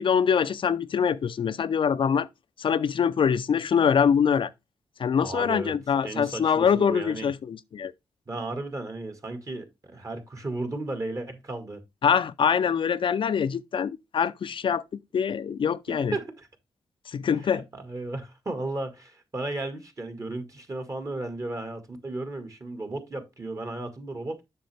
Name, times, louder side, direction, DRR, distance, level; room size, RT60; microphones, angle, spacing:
voice 1, 0.0-2.3 2.6-4.5 5.0-7.9 12.0-16.2 17.1-17.6, left 7 dB, 60° left, 0.5 m, -24 dB
voice 2, 5.2-5.7 6.0-7.3 8.3-11.8 16.1-16.5 17.4-24.5, right 2 dB, 35° right, 1.9 m, -34 dB
7.6 x 6.2 x 3.4 m
cardioid pair, 75°, 10 cm